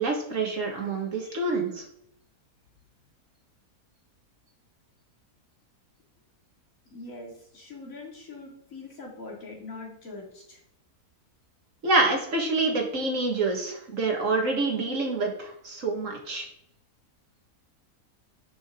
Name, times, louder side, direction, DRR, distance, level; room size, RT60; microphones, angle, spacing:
voice 1, 0.0-1.8 11.8-16.5, right 3 dB, 55° right, 1 dB, 1.9 m, -27 dB
voice 2, 6.9-10.6, left 3 dB, 60° left, -3 dB, 2.7 m, -43 dB
11.0 x 5.5 x 3.7 m, 0.74 s
omnidirectional pair, 1.6 m